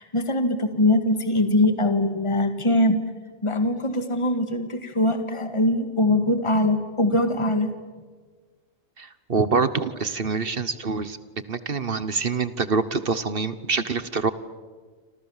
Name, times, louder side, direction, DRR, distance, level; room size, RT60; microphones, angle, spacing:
voice 1, 0.0-3.0 3.4-7.7, left 1 dB, 20° left, 8 dB, 2.0 m, -22 dB
voice 2, 9.0-11.2 11.5-14.3, right 4 dB, 45° right, 14 dB, 1.3 m, -25 dB
28.5 x 27.0 x 7.3 m, 1.4 s
omnidirectional pair, 1.4 m